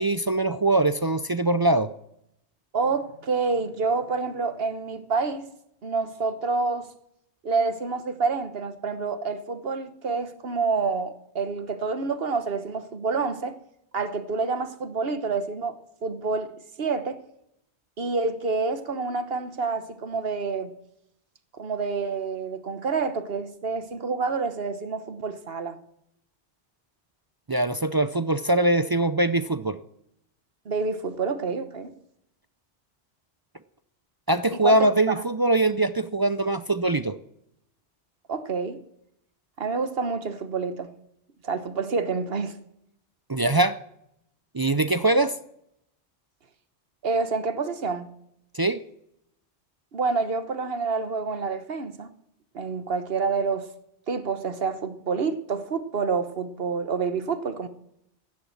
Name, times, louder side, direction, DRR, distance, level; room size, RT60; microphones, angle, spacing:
voice 1, 0.0-1.9 27.5-29.8 34.3-37.2 43.3-43.8 44.5-45.4 48.5-48.8, right 2 dB, 40° right, 0.3 m, -22 dB
voice 2, 2.7-5.5 5.8-6.9 7.4-13.5 13.9-16.5 16.8-17.2 18.0-20.7 21.6-25.8 30.6-31.9 34.6-34.9 38.3-38.8 39.6-40.9 41.4-42.6 47.0-48.1 49.9-52.1 52.5-53.7 54.1-57.7, right 4 dB, 55° right, 1.4 m, -28 dB
15.5 x 10.5 x 7.2 m
omnidirectional pair, 1.2 m